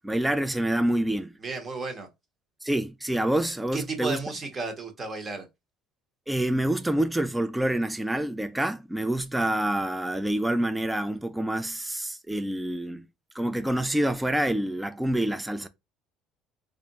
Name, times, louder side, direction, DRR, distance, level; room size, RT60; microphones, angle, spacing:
voice 1, 0.0-1.3 2.6-4.2 6.3-13.1 13.3-15.7, right 1 dB, 5° right, 0.3 m, -27 dB
voice 2, 1.4-2.1 3.7-5.5, right 4 dB, 25° right, 1.0 m, -33 dB
3.3 x 2.5 x 4.0 m
cardioid pair, 130°, 0 cm